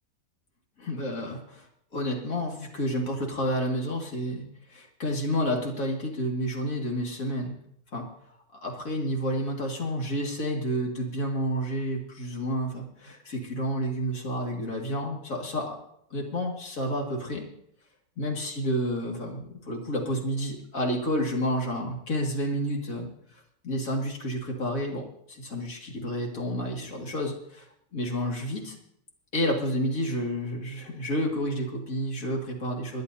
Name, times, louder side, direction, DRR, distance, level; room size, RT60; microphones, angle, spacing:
voice 1, 0.8-1.7 1.9-7.6 7.9-8.1 8.5-15.8 16.1-17.4 18.2-28.8 29.3-33.0, equal, 50° left, 0 dB, 2.5 m, -30 dB
27.0 x 10.5 x 2.7 m, 0.74 s
omnidirectional pair, 1.8 m